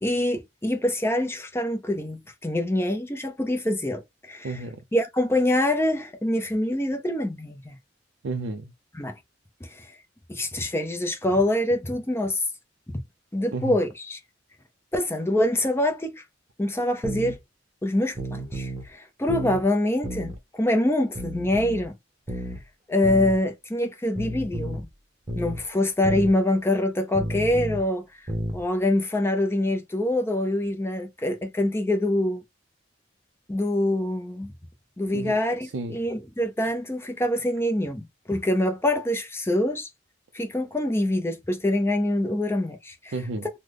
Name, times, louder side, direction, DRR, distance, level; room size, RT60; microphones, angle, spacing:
voice 1, 0.0-4.5 4.9-7.8 9.0-9.1 9.6-9.9 10.3-12.4 13.3-14.2 14.9-16.2 16.6-17.4 17.8-22.0 22.9-24.9 25.3-28.0 28.5-32.4 33.5-34.5 35.0-39.9 40.3-43.1, left 1 dB, 15° left, 0.6 m, -25 dB
voice 2, 4.4-4.8 8.2-8.7 13.5-13.8 35.1-36.0 43.1-43.5, right 3 dB, 70° right, 0.5 m, -32 dB
sound 1, 17.0-17.4 18.2-18.9 19.3-19.6 20.0-20.4 21.2-21.9 22.3-22.6 23.0-23.4 24.2-24.9 25.3-25.6 26.0-26.3 27.2-27.8 28.3-28.6, equal, 25° right, 0.8 m, -31 dB
3.2 x 2.1 x 3.6 m
head